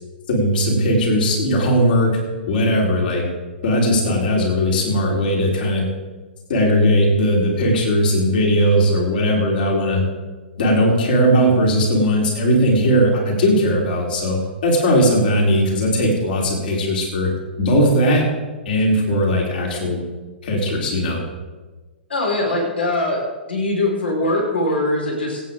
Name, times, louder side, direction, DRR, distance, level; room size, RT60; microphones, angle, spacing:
voice 1, 0.3-2.1 2.5-3.2 3.6-5.9 6.5-10.0 10.6-17.3 17.6-18.2 18.7-20.0 20.4-21.2, equal, 55° left, -2 dB, 4.1 m, -18 dB
voice 2, 22.1-23.2 23.5-25.4, left 2 dB, 75° left, -1 dB, 4.7 m, -21 dB
25.5 x 8.8 x 3.8 m, 1.3 s
figure-of-eight pair, 110°, 6 cm